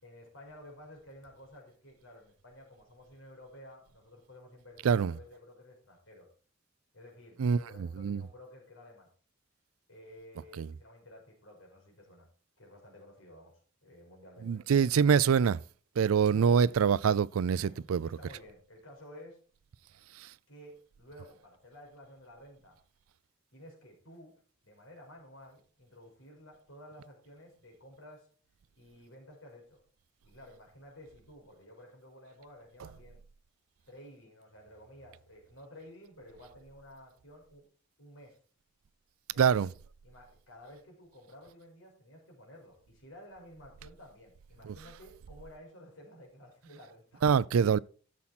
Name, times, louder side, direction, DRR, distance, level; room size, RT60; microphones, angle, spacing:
voice 1, 0.0-6.3 6.9-9.1 9.9-12.3 12.6-14.6 16.3-16.6 17.5-19.4 20.5-22.8 23.5-28.3 28.8-29.8 30.2-33.2 33.9-37.7 38.0-38.4 39.3-39.7 40.0-47.2, left 1 dB, 75° left, 4.9 m, -53 dB
voice 2, 7.4-8.2 10.6-10.7 14.4-15.6 16.0-18.1 39.4-39.7 44.6-44.7 47.2-47.8, right 6 dB, 85° right, 0.4 m, -25 dB
13.0 x 7.2 x 4.2 m
head